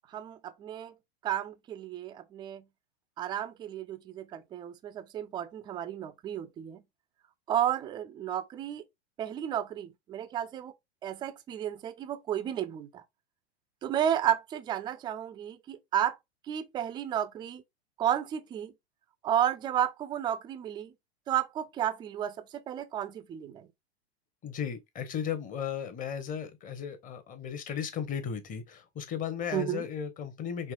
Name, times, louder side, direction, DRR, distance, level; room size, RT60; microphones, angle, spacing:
voice 1, 0.1-0.9 1.2-2.6 3.2-6.8 7.5-8.8 9.2-10.7 11.0-13.0 13.8-16.2 16.5-17.6 18.0-18.7 19.2-20.9 21.3-23.7 29.5-29.9, right 10 dB, 15° right, 0.4 m, -32 dB
voice 2, 24.4-30.7, left 8 dB, 25° left, 0.9 m, -35 dB
5.6 x 2.9 x 2.4 m
figure-of-eight pair, 95°, 33 cm